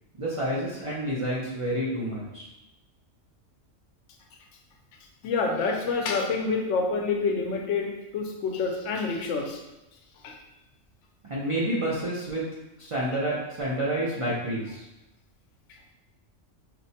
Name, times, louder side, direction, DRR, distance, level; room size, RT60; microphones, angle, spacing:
voice 1, 0.2-2.5 11.3-12.5 12.8-14.8, right 1 dB, 45° right, -7 dB, 0.4 m, -29 dB
voice 2, 5.2-9.6 10.2-10.4 15.7-15.8, left 4 dB, 75° left, 2 dB, 0.9 m, -27 dB
4.4 x 2.1 x 2.7 m, 0.98 s
omnidirectional pair, 1.3 m